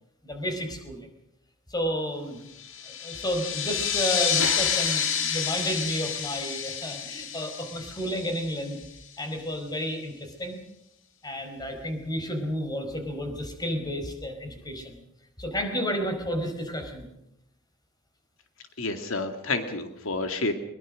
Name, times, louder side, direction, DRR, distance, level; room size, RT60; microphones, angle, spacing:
voice 1, 0.2-1.1 1.7-2.5 2.9-8.8 9.2-10.6 11.2-15.0 15.4-17.1, equal, 20° left, 5 dB, 4.7 m, -31 dB
sound 1, 2.6-8.8, left 7 dB, 75° left, 2.7 m, -29 dB
voice 2, 18.8-20.5, left 2 dB, 90° left, 7 dB, 2.2 m, -29 dB
22.5 x 22.0 x 6.4 m, 0.79 s
head